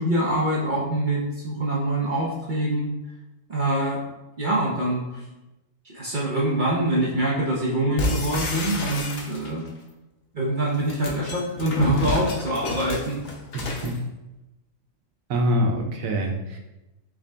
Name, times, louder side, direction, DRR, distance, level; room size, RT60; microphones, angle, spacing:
voice 1, 0.0-2.9 3.5-4.0 4.4-5.2 5.8-9.6 10.3-13.2, right 1 dB, 45° right, -5 dB, 0.8 m, -24 dB
sound 1, 8.0-9.7 10.7-14.0, left 3 dB, 75° left, 1.2 m, -30 dB
voice 2, 13.5-14.0 15.3-16.6, equal, 90° right, 2 dB, 1.2 m, -25 dB
3.8 x 3.7 x 3.3 m, 0.98 s
omnidirectional pair, 1.4 m